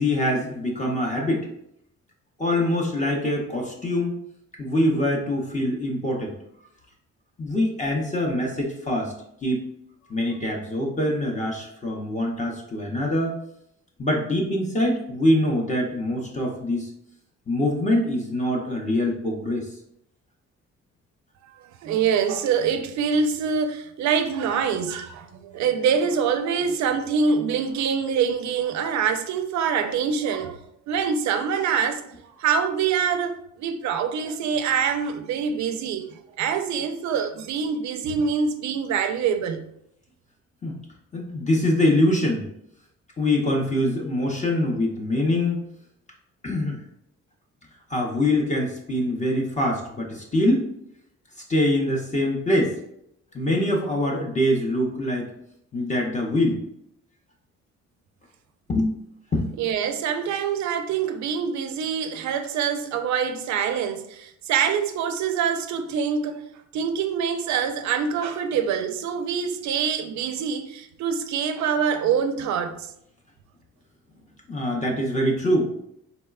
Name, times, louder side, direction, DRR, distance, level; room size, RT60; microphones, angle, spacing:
voice 1, 0.0-1.5 2.4-4.1 4.6-6.3 7.4-9.1 9.4-9.6 10.1-13.3 14.0-16.9 17.5-19.7 40.6-40.8 41.1-42.5 43.2-45.6 46.4-46.8 47.9-50.7 51.5-52.8 53.3-55.3 55.7-56.6 58.7-59.0 59.3-59.5 74.5-75.7, left 1 dB, 25° left, 0.6 m, -24 dB
voice 2, 21.8-30.6 30.9-32.0 32.4-36.1 36.4-39.6 59.6-66.4 66.7-72.8, right 6 dB, 70° right, 0.4 m, -25 dB
3.8 x 2.1 x 2.3 m
cardioid pair, 90°, 30 cm